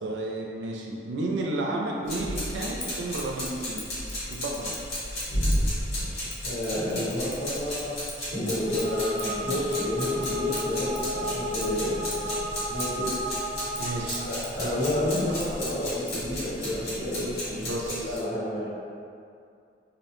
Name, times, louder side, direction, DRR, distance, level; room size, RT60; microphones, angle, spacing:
voice 1, 0.0-3.8 4.3-4.7 13.8-14.2 17.5-18.2, right 2 dB, 85° right, -1 dB, 0.4 m, -32 dB
sound 1, 2.1-18.2, equal, 60° left, 1.0 m, -33 dB
Scissors, 2.8-5.7 6.3-11.1 11.6-16.2, left 3 dB, 25° left, 0.4 m, -43 dB
voice 2, 6.4-7.9 8.3-13.1 14.2-18.7, left 1 dB, 85° left, -12 dB, 1.3 m, -30 dB
sound 2, 8.5-14.2, left 1 dB, 35° right, 0.5 m, -32 dB
2.6 x 2.0 x 2.9 m, 2.4 s
head